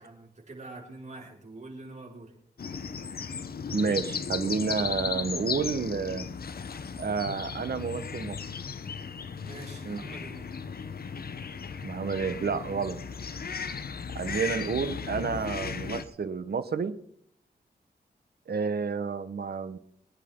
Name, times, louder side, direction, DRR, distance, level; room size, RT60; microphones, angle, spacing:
voice 1, 0.0-2.4 9.4-10.5, right 2 dB, 40° right, -2 dB, 5.3 m, -45 dB
sound 1, 2.6-16.0, left 6 dB, 60° left, 1.0 m, -36 dB
voice 2, 3.7-6.3 7.0-8.5 9.8-10.0 11.8-13.0 14.1-16.9 18.5-19.8, right 5 dB, 65° right, 12 dB, 1.2 m, -30 dB
24.5 x 10.0 x 3.8 m, 0.65 s
wide cardioid pair, 85°, 17 cm